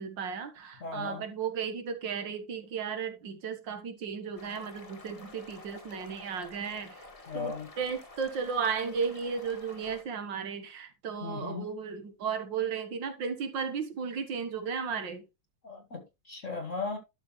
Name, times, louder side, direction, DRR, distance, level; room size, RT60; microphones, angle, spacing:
voice 1, 0.0-7.1 7.3-15.2, right 6 dB, 75° right, 2.1 m, -34 dB
voice 2, 0.8-1.3 7.3-7.7 11.2-11.7 15.6-17.0, left 4 dB, 45° left, 1.6 m, -37 dB
sound 1, 4.4-10.0, left 2 dB, 20° left, 1.5 m, -50 dB
12.0 x 6.0 x 3.1 m
omnidirectional pair, 2.0 m